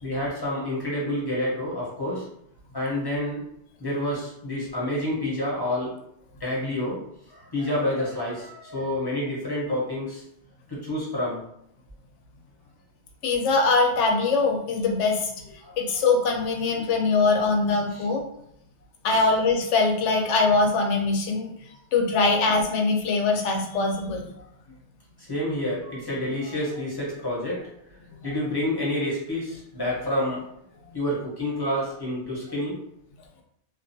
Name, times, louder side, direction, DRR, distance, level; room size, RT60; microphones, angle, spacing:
voice 1, 0.0-2.2 2.7-3.4 3.8-5.9 6.4-7.0 7.3-10.2 10.7-11.5 15.6-15.8 16.8-16.9 17.9-18.0 19.1-19.3 25.2-27.7 28.2-30.4 30.9-32.8, left 1 dB, 25° left, -5 dB, 0.7 m, -28 dB
voice 2, 13.2-15.3 15.8-18.2 19.0-21.5 21.9-24.2, left 3 dB, 90° left, 2 dB, 0.9 m, -22 dB
2.4 x 2.3 x 2.6 m, 0.75 s
omnidirectional pair, 1.2 m